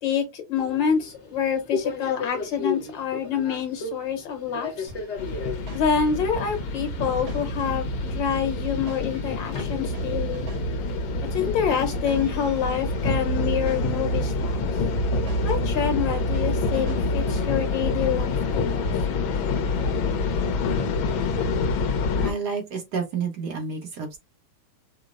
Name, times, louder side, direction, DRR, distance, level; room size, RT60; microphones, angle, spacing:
voice 1, 0.0-4.9 5.7-10.5 11.2-14.7 15.4-18.9, left 7 dB, 70° left, 1.7 m, -27 dB
Subway metro underground, 0.6-10.3, left 5 dB, 45° left, 1.0 m, -36 dB
sound 1, 4.9-18.0, right 1 dB, 75° right, 2.4 m, -46 dB
sound 2, 5.2-22.3, left 2 dB, 90° left, 1.6 m, -26 dB
voice 2, 22.2-24.2, right 5 dB, 60° right, 1.5 m, -30 dB
5.0 x 2.0 x 2.5 m
omnidirectional pair, 2.1 m